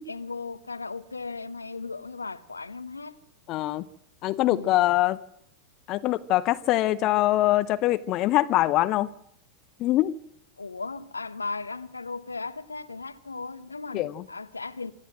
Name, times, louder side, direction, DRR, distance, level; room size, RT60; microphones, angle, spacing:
voice 1, 0.1-3.2 4.5-4.8 10.6-14.9, left 4 dB, 80° left, 1.0 m, -36 dB
voice 2, 3.5-3.8 4.2-5.2 5.9-9.1 9.8-10.2 13.9-14.1, left 16 dB, 40° left, 0.7 m, -23 dB
25.5 x 14.0 x 7.7 m
figure-of-eight pair, 90°, 0 cm